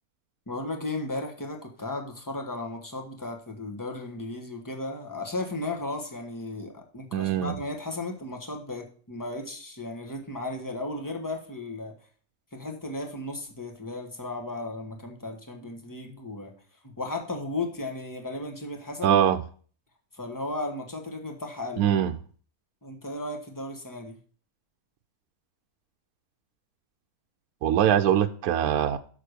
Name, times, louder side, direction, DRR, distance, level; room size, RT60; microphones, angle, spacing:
voice 1, 0.5-11.9 12.5-16.5 16.8-19.2 20.1-21.8 22.8-24.2, left 2 dB, 15° left, 3 dB, 1.3 m, -35 dB
voice 2, 7.1-7.6 19.0-19.4 21.8-22.1 27.6-29.0, right 10 dB, 85° right, 7 dB, 1.1 m, -22 dB
6.8 x 6.1 x 6.6 m, 0.44 s
omnidirectional pair, 1.6 m